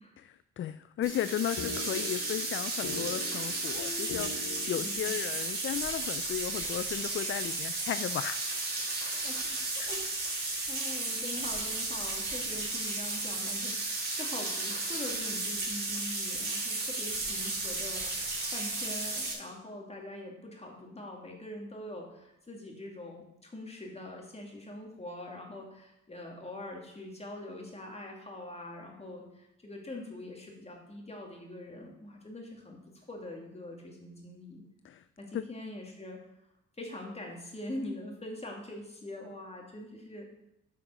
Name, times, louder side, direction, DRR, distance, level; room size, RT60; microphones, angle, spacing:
voice 1, 0.2-8.4 9.1-9.2 9.8-9.9 10.5-10.7 34.8-35.0 35.3-35.5, left 10 dB, 40° left, 13 dB, 0.4 m, -35 dB
sound 1, 1.0-5.3, left 5 dB, 65° left, 1.4 m, -42 dB
sound 2, 1.0-19.3, right 2 dB, 35° right, 3.6 m, -34 dB
voice 2, 4.8-5.2 9.2-18.1 18.5-34.6 35.2-36.2 36.8-40.3, left 1 dB, 20° left, 0 dB, 2.8 m, -43 dB
9.7 x 5.8 x 6.2 m, 0.85 s
cardioid pair, 90°, 30 cm